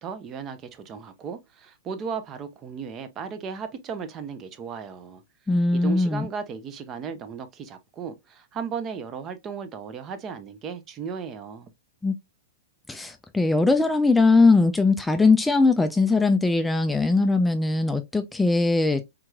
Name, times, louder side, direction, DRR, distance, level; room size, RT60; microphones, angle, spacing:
voice 1, 0.0-5.2 5.5-11.7, right 6 dB, 30° right, 0.6 m, -35 dB
voice 2, 5.5-6.3 12.0-12.1 12.9-19.0, left 3 dB, 5° left, 0.3 m, -20 dB
3.6 x 2.9 x 2.3 m
hypercardioid pair, 115°, 0 cm